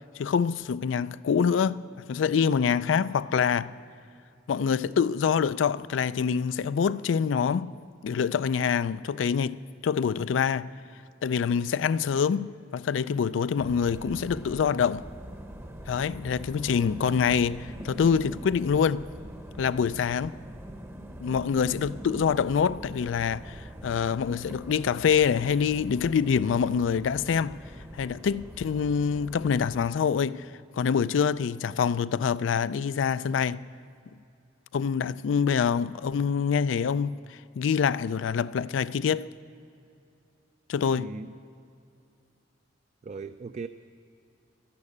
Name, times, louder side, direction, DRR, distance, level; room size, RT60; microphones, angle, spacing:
voice 1, 0.2-3.7 4.5-7.7 8.0-9.6 9.8-10.7 11.2-15.1 15.9-19.1 19.6-20.3 21.2-27.6 27.9-30.5 30.7-33.6 34.7-39.3 40.7-41.1, left 6 dB, 75° left, 0.4 m, -26 dB
sound 1, 13.6-29.9, equal, 15° right, 0.8 m, -43 dB
voice 2, 40.9-41.3 43.0-43.7, right 4 dB, 40° right, 0.3 m, -38 dB
12.0 x 11.5 x 8.4 m
head